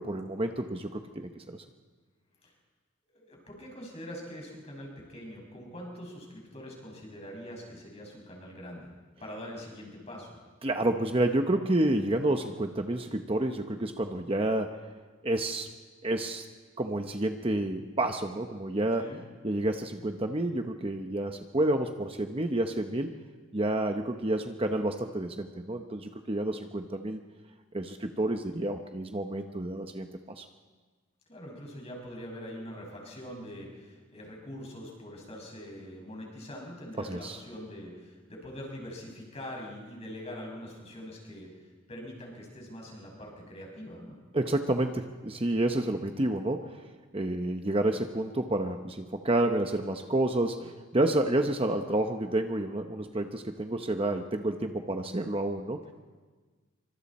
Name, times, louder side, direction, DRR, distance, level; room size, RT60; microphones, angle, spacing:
voice 1, 0.0-1.6 10.6-14.8 15.2-15.7 16.0-16.4 16.8-19.1 19.4-23.1 23.5-27.2 27.7-30.4 37.0-37.4 44.3-46.8 47.1-55.8, right 1 dB, 25° right, 5 dB, 0.9 m, -29 dB
voice 2, 3.1-8.9 9.2-10.3 19.0-19.2 31.3-41.6 41.9-44.3 51.2-51.4, equal, 30° left, -1 dB, 6.2 m, -43 dB
26.5 x 24.5 x 4.3 m, 1.4 s
head